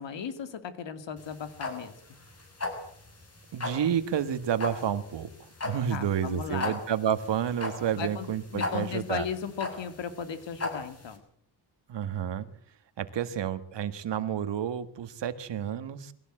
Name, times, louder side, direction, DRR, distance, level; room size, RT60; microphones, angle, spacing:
voice 1, 0.0-2.0 5.9-6.8 7.9-8.3 8.5-11.2, left 7 dB, 70° left, 10 dB, 2.8 m, -36 dB
sound 1, 1.2-11.1, left 3 dB, 30° left, 6.7 m, -37 dB
voice 2, 3.5-9.3 11.9-12.5 13.0-16.1, right 9 dB, 65° right, 11 dB, 1.9 m, -30 dB
21.5 x 16.5 x 7.9 m, 0.62 s
cardioid pair, 95°, 46 cm